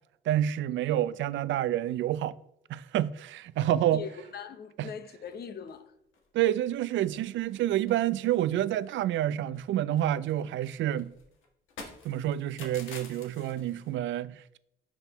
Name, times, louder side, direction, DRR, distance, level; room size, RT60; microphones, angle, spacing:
voice 1, 0.3-2.3 2.7-4.0 4.8-4.9 6.3-11.1 12.0-14.6, right 12 dB, 70° right, 0.4 m, -28 dB
voice 2, 3.7-5.9, left 7 dB, 55° left, 0.7 m, -41 dB
sound 1, 5.3-5.8 6.1-6.3 6.6-6.7 7.0-7.6 7.9-9.3 9.5-13.9, left 4 dB, 80° left, 1.4 m, -49 dB
10.5 x 3.6 x 3.0 m
cardioid pair, 90°, 20 cm